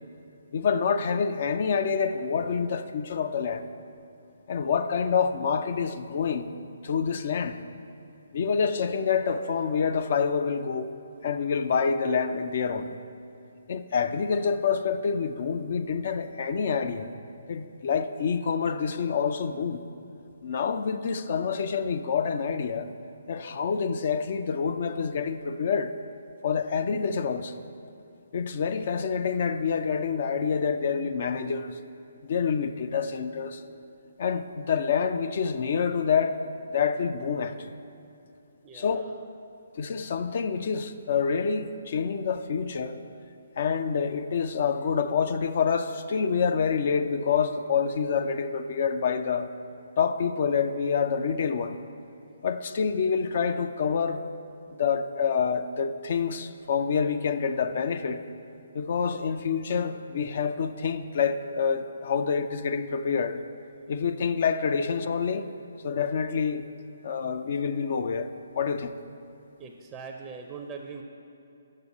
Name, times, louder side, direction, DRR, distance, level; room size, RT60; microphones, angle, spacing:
voice 1, 0.5-3.6 4.5-6.5 6.8-7.6 8.3-10.9 11.2-13.0 13.7-17.1 17.5-19.8 20.4-22.9 23.3-25.9 26.4-27.6 28.3-31.8 32.2-33.6 34.2-37.8 38.7-39.0 39.7-43.0 43.6-49.5 50.0-51.8 52.4-54.2 54.8-58.2 58.7-63.4 63.9-65.5 65.8-66.7 67.0-68.3 68.6-68.9, left 6 dB, 50° left, 10 dB, 0.4 m, -27 dB
voice 2, 38.6-39.1 69.6-71.0, right 5 dB, 15° right, 3 dB, 0.5 m, -41 dB
6.7 x 6.3 x 7.1 m, 2.8 s
hypercardioid pair, 145°, 0 cm